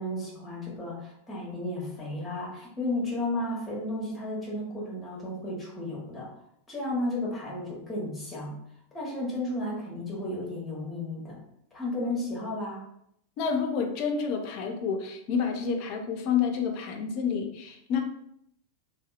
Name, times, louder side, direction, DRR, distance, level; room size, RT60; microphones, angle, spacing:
voice 1, 0.0-6.3 6.7-8.6 8.9-11.4 11.7-12.8, left 1 dB, 10° left, -4 dB, 0.9 m, -33 dB
voice 2, 13.4-18.0, left 6 dB, 45° left, 4 dB, 0.4 m, -29 dB
2.7 x 2.1 x 2.3 m, 0.74 s
figure-of-eight pair, 90°, 0 cm